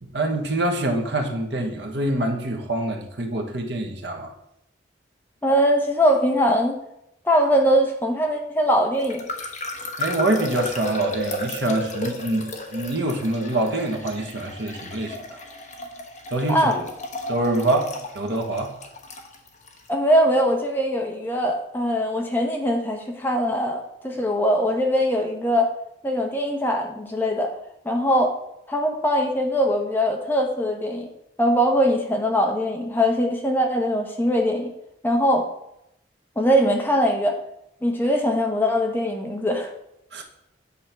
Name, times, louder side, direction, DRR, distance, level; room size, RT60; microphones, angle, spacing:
voice 1, 0.0-4.3 10.0-15.4 16.3-16.7 17.3-18.7 40.1-40.2, right 2 dB, 65° right, 2 dB, 1.2 m, -25 dB
voice 2, 5.4-6.8 7.2-9.3 16.5-16.8 19.9-25.7 26.0-27.5 27.8-28.3 28.7-31.1 31.4-34.7 35.0-35.5 36.4-37.4 37.8-39.7, equal, 10° left, 1 dB, 0.9 m, -21 dB
sound 1, 9.0-19.8, left 1 dB, 40° left, 0.9 m, -33 dB
8.5 x 3.6 x 5.8 m, 0.79 s
head